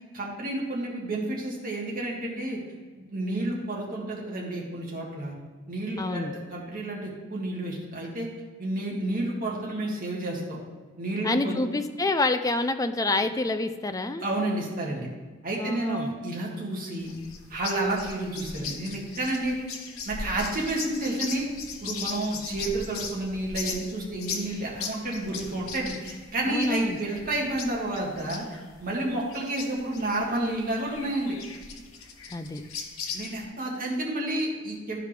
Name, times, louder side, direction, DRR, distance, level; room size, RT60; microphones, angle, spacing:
voice 1, 0.1-2.6 3.0-5.3 5.7-8.3 8.6-10.6 11.0-11.6 14.2-15.1 15.4-17.1 17.5-19.6 20.1-21.5 21.8-28.5 28.8-31.4 33.1-35.0, right 1 dB, 45° right, -3 dB, 1.7 m, -30 dB
voice 2, 6.0-6.3 11.2-14.3 15.6-16.1 26.5-27.0 32.3-32.6, left 2 dB, 15° left, 9 dB, 0.4 m, -27 dB
sound 1, 17.0-33.5, left 5 dB, 80° left, 0.9 m, -39 dB
12.5 x 4.8 x 3.4 m, 1.4 s
head